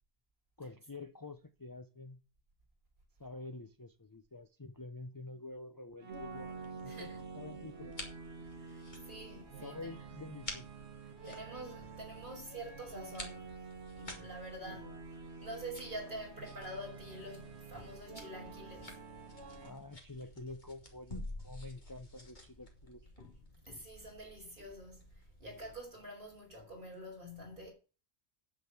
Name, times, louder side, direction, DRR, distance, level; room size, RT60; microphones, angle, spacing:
voice 1, 0.6-2.2 3.2-7.1 7.3-7.9 9.6-10.7 14.7-14.9 19.6-23.0, left 2 dB, 25° left, 0.6 m, -48 dB
sound 1, 6.0-19.7, right 5 dB, 90° right, 1.7 m, -49 dB
sound 2, 6.1-25.8, left 1 dB, 45° left, 2.7 m, -52 dB
voice 2, 6.9-7.2 8.6-10.0 11.0-13.5 13.9-15.0 15.4-19.0 23.2-23.4 23.7-25.0 25.4-27.7, right 1 dB, 50° right, 5.8 m, -47 dB
9.2 x 7.6 x 8.2 m
omnidirectional pair, 1.1 m